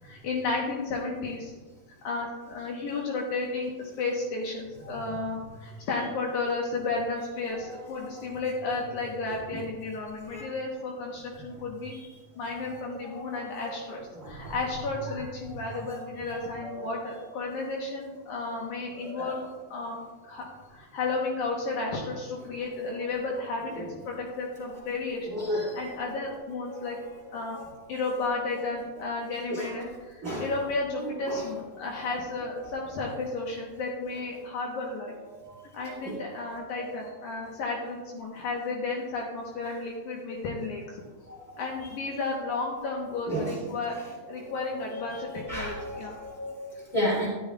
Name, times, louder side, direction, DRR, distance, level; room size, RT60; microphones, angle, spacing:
voice 1, 0.0-1.5 2.0-11.9 12.4-27.0 27.3-27.6 27.9-35.1 35.7-41.0 41.6-44.0 44.3-46.1, left 3 dB, 75° left, -2 dB, 2.4 m, -33 dB
voice 2, 13.3-13.7 14.2-14.5 15.9-16.0 16.6-16.7 19.2-19.3 25.3-25.8 27.5-27.6 29.5-29.7 30.2-30.4 41.3-41.4 43.3-43.5 44.4-44.8 45.1-47.3, equal, 25° right, -7 dB, 2.3 m, -32 dB
12.5 x 9.6 x 2.3 m, 1.3 s
omnidirectional pair, 3.7 m